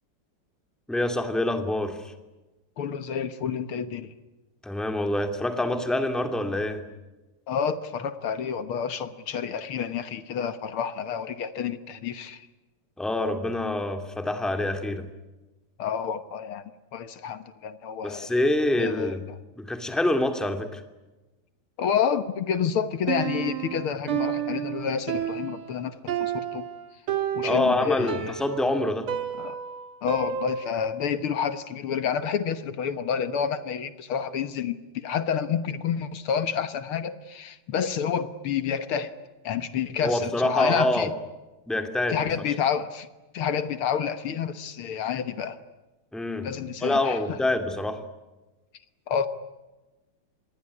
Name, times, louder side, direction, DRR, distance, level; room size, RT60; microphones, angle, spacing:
voice 1, 0.9-2.1 4.6-6.8 13.0-15.1 18.0-19.2 19.6-20.8 27.4-29.1 40.0-41.1 41.7-42.2 46.1-46.5 46.8-48.0, left 1 dB, ahead, 7 dB, 2.3 m, -26 dB
voice 2, 2.8-4.1 7.5-12.5 15.8-16.6 16.9-18.3 18.8-19.2 21.8-26.7 27.3-28.4 29.4-29.6 30.0-39.1 39.4-41.1 42.1-43.1 43.3-45.6 46.4-47.4 49.1-49.3, left 7 dB, 75° left, 12 dB, 2.1 m, -29 dB
Piano, 23.1-30.9, right 9 dB, 75° right, 2.5 m, -31 dB
26.5 x 21.5 x 9.8 m, 1.1 s
omnidirectional pair, 2.4 m